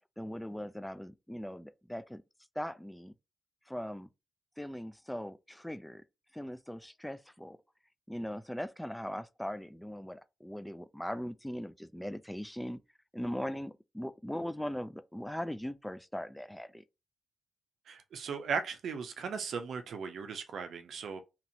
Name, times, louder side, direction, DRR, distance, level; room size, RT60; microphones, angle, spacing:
voice 1, 0.2-2.2 2.6-3.1 3.7-4.1 4.6-6.0 6.3-7.6 8.1-12.8 13.1-16.8, equal, 5° left, 0.3 m, -40 dB
voice 2, 17.9-21.2, right 5 dB, 70° right, 0.5 m, -37 dB
2.9 x 2.6 x 2.8 m
cardioid pair, 75°, 0 cm